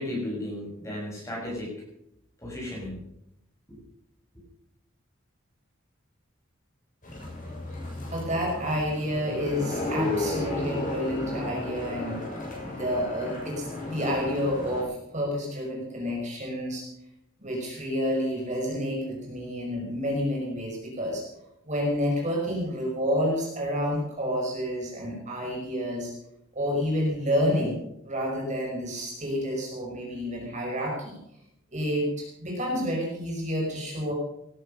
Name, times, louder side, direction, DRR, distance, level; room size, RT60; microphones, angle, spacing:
voice 1, 0.0-1.8 2.4-3.0 3.7-3.8, left 1 dB, 15° left, -3 dB, 6.8 m, -34 dB
sound 1, 7.0-14.8, left 2 dB, 40° left, 7.2 m, -34 dB
voice 2, 8.1-12.2 12.6-16.9 17.4-21.3 21.6-26.1 26.5-27.8 28.0-31.2 31.7-34.1, equal, 35° right, -1 dB, 5.6 m, -29 dB
18.5 x 12.0 x 5.6 m, 0.79 s
head